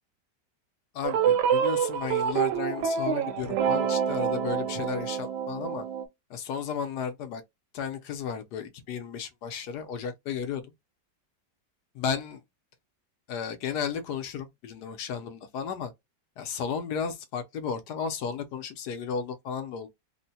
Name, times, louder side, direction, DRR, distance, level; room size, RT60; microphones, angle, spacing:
voice 1, 0.9-5.8 6.3-7.4 7.7-10.7 11.9-12.4 13.3-15.9 16.4-19.9, left 7 dB, 70° left, 1.2 m, -34 dB
sound 1, 1.0-6.0, right 8 dB, 75° right, 1.2 m, -27 dB
3.6 x 2.1 x 2.7 m
omnidirectional pair, 1.9 m